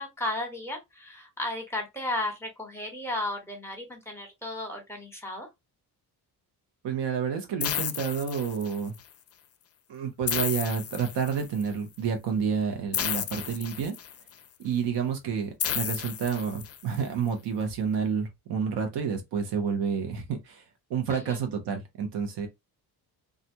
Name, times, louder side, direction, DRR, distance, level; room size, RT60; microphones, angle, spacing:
voice 1, 0.0-5.5 21.1-21.4, left 1 dB, 5° left, 1.1 m, -34 dB
voice 2, 6.8-8.9 9.9-13.9 14.6-20.6 20.9-22.5, right 6 dB, 85° right, 1.0 m, -29 dB
sound 1, 7.6-9.0 10.3-11.6 12.9-14.3 15.6-17.0, left 9 dB, 40° left, 0.4 m, -32 dB
2.5 x 2.2 x 2.8 m
cardioid pair, 100°, 41 cm